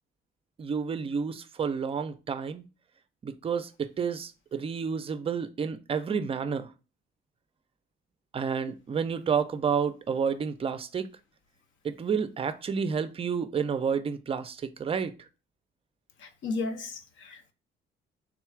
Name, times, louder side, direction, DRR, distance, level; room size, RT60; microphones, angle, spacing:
voice 1, 0.6-2.6 3.2-6.7 8.3-11.1 11.8-15.3, right 6 dB, 30° right, 0.4 m, -30 dB
voice 2, 16.2-17.5, left 3 dB, 70° left, 0.7 m, -34 dB
3.6 x 2.3 x 4.5 m
cardioid pair, 115°, 20 cm